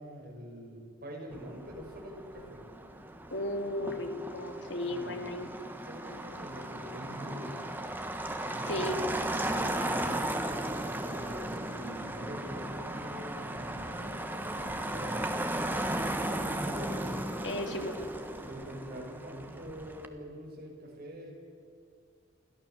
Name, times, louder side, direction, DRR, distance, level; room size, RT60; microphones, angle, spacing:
voice 1, 0.0-2.6 4.9-5.2 5.8-7.7 8.4-10.3 11.0-16.1 16.6-17.4 18.5-21.3, equal, 50° right, -1 dB, 6.0 m, -45 dB
Motor vehicle (road), 1.3-20.1, right 1 dB, 10° right, 1.4 m, -36 dB
voice 2, 3.3-5.5 8.6-9.0 17.4-18.0, left 1 dB, 65° left, 5 dB, 2.3 m, -34 dB
29.0 x 12.5 x 7.2 m, 2.4 s
head